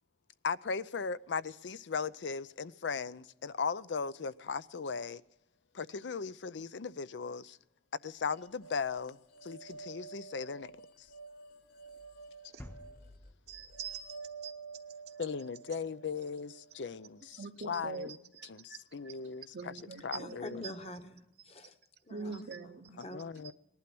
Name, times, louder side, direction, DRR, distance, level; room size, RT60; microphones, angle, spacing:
voice 1, 0.4-5.2 5.7-7.6 8.0-10.7 11.0-11.1 15.2-18.2 18.5-20.6 22.3-22.5 23.0-23.5, left 5 dB, 90° left, 0.6 m, -38 dB
sound 1, 8.3-17.5, right 4 dB, 55° left, 0.8 m, -51 dB
sound 2, 12.6-15.3, left 1 dB, 10° left, 0.6 m, -53 dB
voice 2, 13.5-14.5 15.1-15.2 17.4-18.8 19.0-19.2 19.5-20.7 22.1-23.0, right 5 dB, 60° right, 0.7 m, -44 dB
voice 3, 20.1-21.8 22.0-23.3, left 1 dB, 35° left, 1.2 m, -46 dB
19.0 x 12.0 x 6.0 m
head